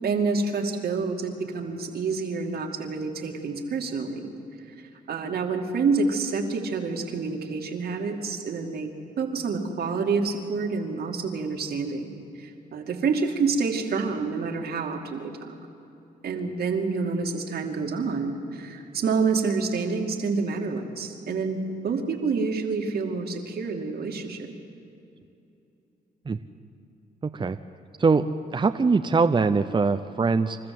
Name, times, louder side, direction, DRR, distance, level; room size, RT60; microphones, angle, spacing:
voice 1, 0.0-4.3 4.8-15.6 16.2-21.6 21.8-24.6, right 4 dB, 70° right, 3 dB, 2.5 m, -28 dB
voice 2, 27.2-27.6 28.0-28.3 28.5-30.6, right 4 dB, 30° right, 8 dB, 0.7 m, -22 dB
27.5 x 14.0 x 7.8 m, 2.8 s
cardioid pair, 65°, 17 cm